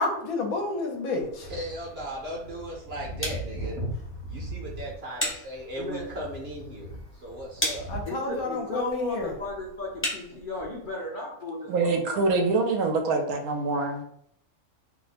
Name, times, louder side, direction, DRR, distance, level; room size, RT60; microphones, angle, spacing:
voice 1, 0.0-1.5 7.9-9.3, left 3 dB, 75° left, 2 dB, 1.1 m, -30 dB
sound 1, 1.2-10.9, left 1 dB, 10° left, 0.7 m, -38 dB
voice 2, 1.4-8.1, right 1 dB, 50° right, -3 dB, 0.9 m, -35 dB
voice 3, 8.0-12.4, left 1 dB, 50° left, -5 dB, 0.7 m, -35 dB
voice 4, 11.7-14.0, right 3 dB, 80° right, 4 dB, 1.0 m, -25 dB
2.8 x 2.1 x 4.0 m, 0.68 s
omnidirectional pair, 1.6 m